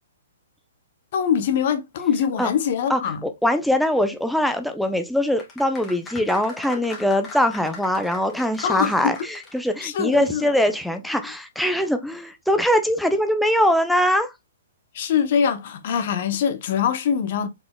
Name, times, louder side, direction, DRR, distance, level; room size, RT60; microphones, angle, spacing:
voice 1, 1.1-3.2 8.6-9.1 9.8-10.5 14.9-17.5, left 8 dB, 55° left, 0.7 m, -23 dB
voice 2, 2.9-14.3, left 1 dB, ahead, 0.4 m, -22 dB
sound 1, 5.4-9.9 10.1-10.2, left 3 dB, 20° left, 1.6 m, -39 dB
4.8 x 3.8 x 2.2 m
hypercardioid pair, 125°, 0 cm